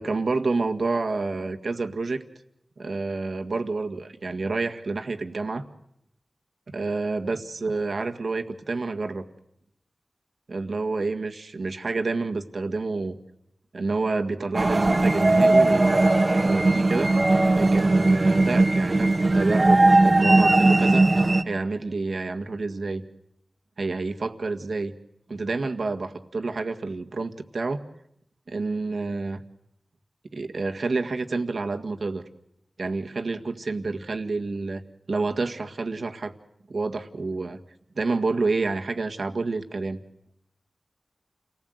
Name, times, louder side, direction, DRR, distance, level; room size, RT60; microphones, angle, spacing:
voice 1, 0.0-2.2 2.8-5.6 6.7-9.2 10.5-13.2 13.7-16.0 16.4-17.1 17.5-21.0 21.4-23.0 23.8-24.9 25.3-27.8 28.5-29.4 30.3-32.2 32.8-34.8 35.1-36.3 36.7-37.6 37.9-40.0, right 3 dB, 80° right, 5 dB, 1.8 m, -28 dB
sound 1, 14.5-21.4, right 2 dB, 40° right, 1.2 m, -19 dB
29.5 x 19.5 x 8.0 m, 0.78 s
wide cardioid pair, 70°, 0 cm